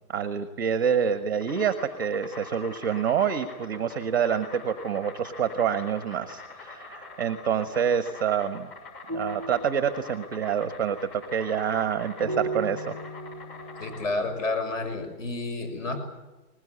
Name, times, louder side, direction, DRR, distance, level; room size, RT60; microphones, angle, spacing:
voice 1, 0.1-8.7 9.1-12.9, right 7 dB, 15° right, 11 dB, 0.7 m, -27 dB
Insect, 1.1-14.1, left 3 dB, 35° left, 6.3 m, -45 dB
sound 1, 9.1-14.1, right 2 dB, 10° left, 1.8 m, -37 dB
voice 2, 13.8-16.0, left 3 dB, 55° left, 9 dB, 6.3 m, -30 dB
21.0 x 20.5 x 9.6 m, 1.1 s
hypercardioid pair, 160°, 46 cm